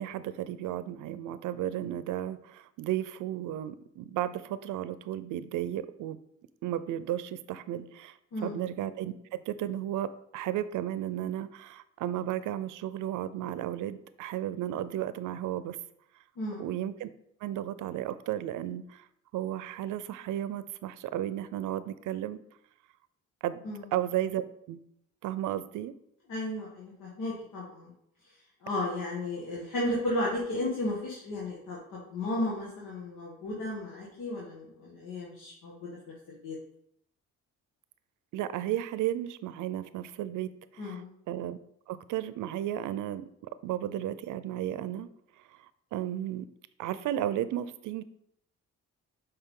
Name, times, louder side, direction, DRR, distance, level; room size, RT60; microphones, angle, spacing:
voice 1, 0.0-6.2 6.6-15.8 16.6-17.1 17.4-19.1 19.3-22.4 23.4-23.6 23.9-24.8 25.2-25.9 38.3-41.0 41.3-41.6 41.9-43.3 43.6-45.1 45.9-46.5 46.8-48.0, right 12 dB, 85° right, 14 dB, 0.6 m, -34 dB
voice 2, 16.4-16.7 23.6-23.9 26.3-27.9 28.2-28.3 28.6-35.9 36.3-36.6 40.8-41.1, left 1 dB, 85° left, -4 dB, 1.8 m, -34 dB
8.1 x 5.5 x 3.8 m, 0.75 s
cardioid pair, 90°, 30 cm